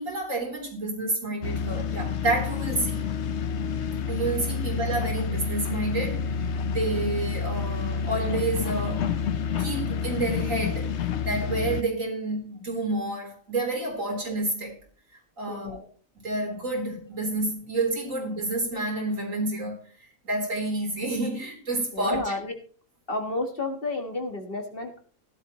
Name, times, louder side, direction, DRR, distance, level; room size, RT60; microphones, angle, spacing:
voice 1, 0.0-3.1 4.1-9.0 9.6-10.9 11.3-14.8 15.4-15.8 16.2-19.8 20.2-22.3, right 2 dB, 70° right, 4.3 m, -29 dB
sound 1, 1.4-11.8, left 6 dB, 60° left, 1.0 m, -29 dB
voice 2, 15.5-15.9 21.9-22.6 23.1-25.0, left 2 dB, 40° left, 1.9 m, -31 dB
16.0 x 12.0 x 3.1 m
omnidirectional pair, 1.4 m